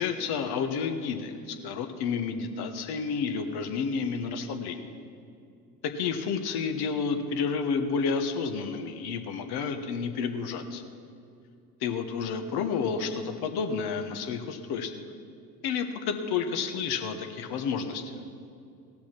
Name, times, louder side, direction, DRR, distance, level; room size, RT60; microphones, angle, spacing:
voice 1, 0.0-4.9 5.8-10.8 11.8-14.9 15.6-18.1, left 5 dB, 50° left, 7 dB, 1.3 m, -30 dB
17.5 x 5.9 x 6.0 m, 2.5 s
hypercardioid pair, 70°, 48 cm